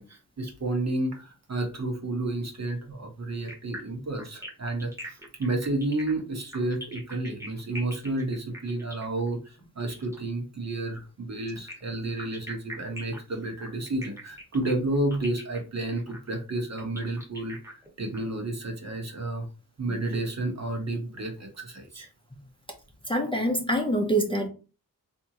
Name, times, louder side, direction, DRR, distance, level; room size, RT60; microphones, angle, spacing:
voice 1, 0.0-17.6 18.0-19.4 19.8-22.1, right 2 dB, 50° right, 1.1 m, -31 dB
sound 1, 3.5-10.3 11.5-18.2, equal, 10° right, 1.1 m, -43 dB
voice 2, 23.1-24.5, right 1 dB, 15° left, 0.6 m, -25 dB
3.5 x 2.7 x 2.9 m
wide cardioid pair, 85°, 35 cm